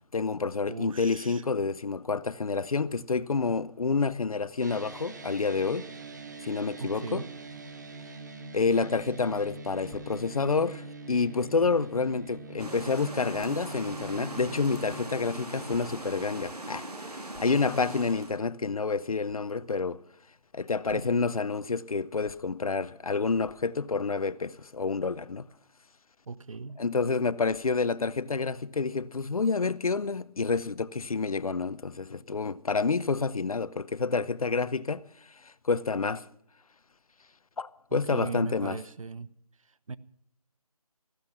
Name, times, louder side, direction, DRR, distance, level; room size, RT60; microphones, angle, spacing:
voice 1, 0.1-5.9 6.4-7.2 8.5-16.9 17.4-20.0 20.5-25.5 26.8-35.0 35.4-36.2 37.6-38.8, left 4 dB, 65° left, 0.8 m, -28 dB
voice 2, 0.7-1.4 6.8-7.3 20.9-21.2 26.3-26.8 37.9-39.3 39.6-40.0, right 4 dB, 60° right, 0.7 m, -39 dB
sound 1, 4.6-15.1, right 3 dB, 30° right, 0.9 m, -44 dB
sound 2, 9.8-10.0 11.6-11.8 12.5-12.6 13.3-13.5 14.5-14.7 15.7-15.8 16.1-16.3 17.2-17.6 19.2-19.4 20.6-21.1 22.2-22.3 23.4-23.6 24.4-24.6 25.5-25.7 26.5-26.8 27.4-27.7, left 1 dB, 5° left, 1.4 m, -55 dB
sound 3, 12.6-18.4, right 2 dB, 80° right, 2.5 m, -40 dB
15.0 x 12.0 x 5.8 m
figure-of-eight pair, 165°, 20 cm